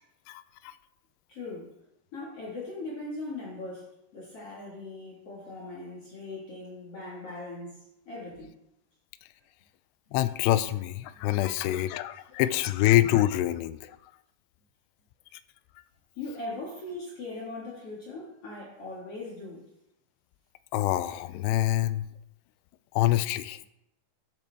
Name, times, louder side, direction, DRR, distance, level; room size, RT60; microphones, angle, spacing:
voice 1, 1.3-1.7 2.1-8.5 11.1-11.6 16.1-19.7, left 2 dB, 45° left, -5 dB, 2.1 m, -40 dB
voice 2, 10.1-13.9 20.7-22.0 23.0-23.6, left 14 dB, 85° left, 14 dB, 2.5 m, -25 dB
12.0 x 7.2 x 3.5 m, 0.81 s
omnidirectional pair, 5.1 m